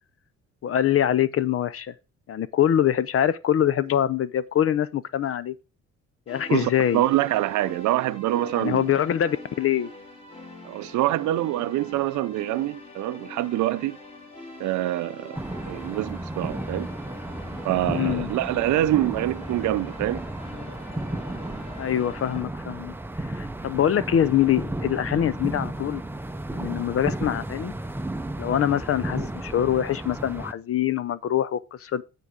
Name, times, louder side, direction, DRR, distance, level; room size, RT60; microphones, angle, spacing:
voice 1, 0.6-1.9 2.3-5.5 6.3-7.0 8.6-9.9 17.9-18.3 21.8-22.9 23.2-26.0 26.5-27.7 28.4-32.0, left 10 dB, 50° left, 0.5 m, -24 dB
sound 1, 6.3-22.4, left 2 dB, 20° left, 3.0 m, -44 dB
voice 2, 6.5-8.9 10.6-14.0 14.6-15.4 15.6-16.9 17.6-20.2, right 15 dB, 75° right, 0.5 m, -25 dB
sound 2, 15.3-30.5, right 1 dB, 5° right, 0.6 m, -33 dB
9.6 x 3.9 x 4.9 m
cardioid pair, 90°, 30 cm